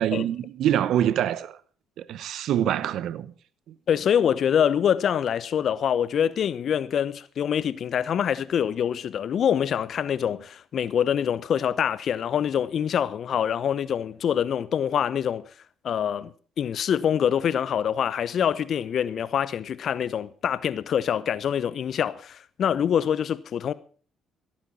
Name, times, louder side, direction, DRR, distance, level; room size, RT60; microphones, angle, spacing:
voice 1, 0.0-1.6 2.0-3.3, right 11 dB, 70° right, 0.9 m, -25 dB
voice 2, 3.9-15.4 15.8-23.7, left 8 dB, 60° left, 0.8 m, -25 dB
16.0 x 8.9 x 5.8 m
hypercardioid pair, 55°, 0 cm